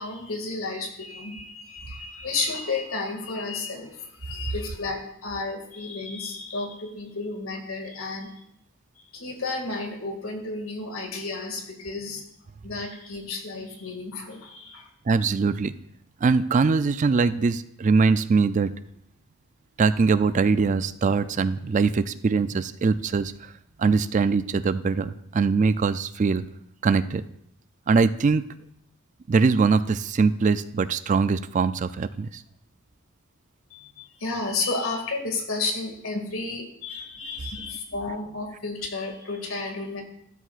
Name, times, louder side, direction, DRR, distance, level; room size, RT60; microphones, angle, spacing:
voice 1, 0.0-8.3 9.1-12.2 12.6-14.9 33.7-40.0, left 3 dB, 70° left, 3 dB, 2.2 m, -32 dB
voice 2, 15.1-15.7 16.2-18.7 19.8-23.3 23.8-26.4 26.8-27.2 27.9-28.4 29.3-32.4, right 4 dB, 35° right, 14 dB, 0.3 m, -22 dB
14.0 x 12.5 x 2.5 m, 0.72 s
head